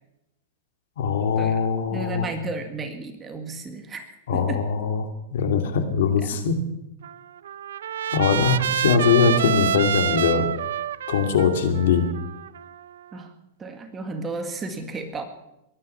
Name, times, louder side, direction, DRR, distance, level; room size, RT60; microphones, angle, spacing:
voice 1, 1.0-2.3 4.3-6.6 8.1-10.5 11.1-12.1, left 6 dB, 75° left, 7 dB, 2.5 m, -21 dB
voice 2, 1.9-4.6 6.2-6.4 8.8-8.9 9.4-9.6 13.1-13.3 13.6-15.2, right 3 dB, 15° right, 6 dB, 1.8 m, -33 dB
Trumpet, 7.0-13.2, right 9 dB, 90° right, 0.6 m, -28 dB
22.0 x 10.0 x 5.7 m, 0.90 s
supercardioid pair, 150°, 0 cm